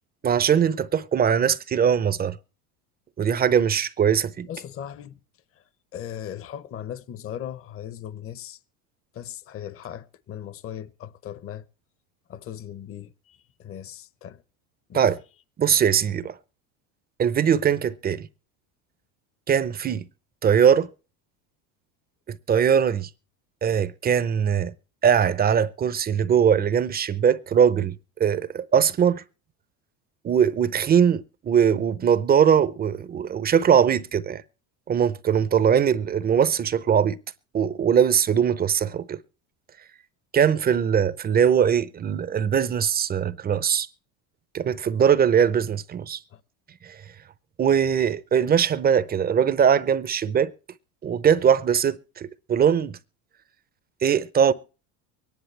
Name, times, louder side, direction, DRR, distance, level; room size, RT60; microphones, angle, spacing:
voice 1, 0.2-2.4 3.2-4.5 14.9-15.2 15.6-16.3 17.2-18.3 19.5-20.1 20.4-20.9 22.5-23.1 23.6-24.7 25.0-27.9 28.2-29.2 30.2-34.4 34.9-37.2 37.5-39.2 40.3-43.9 44.5-46.2 46.8-46.9 47.6-50.5 51.0-53.0 54.0-54.5, right 8 dB, 20° right, 0.6 m, -21 dB
voice 2, 4.4-5.2 5.9-8.6 9.1-11.6 12.3-14.4 14.9-15.1 46.3-46.4, left 10 dB, 30° left, 0.8 m, -38 dB
23.5 x 10.5 x 3.2 m
supercardioid pair, 115°, 44 cm